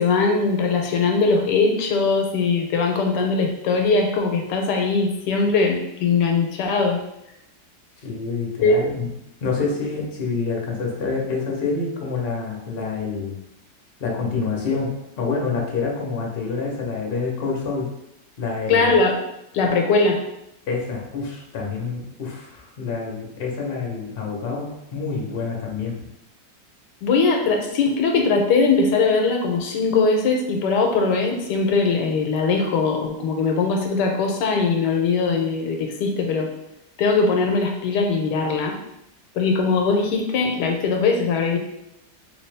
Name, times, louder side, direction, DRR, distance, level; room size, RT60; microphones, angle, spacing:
voice 1, 0.0-7.0 8.6-8.8 18.7-19.2 19.5-20.2 27.0-36.5 37.0-38.8 39.3-41.6, left 4 dB, 85° left, 2 dB, 1.2 m, -20 dB
voice 2, 8.0-9.1 9.4-13.4 14.0-14.9 15.2-17.9 18.4-18.9 20.7-26.1, left 4 dB, 50° left, -2 dB, 0.7 m, -27 dB
3.3 x 3.0 x 3.3 m, 0.85 s
omnidirectional pair, 1.8 m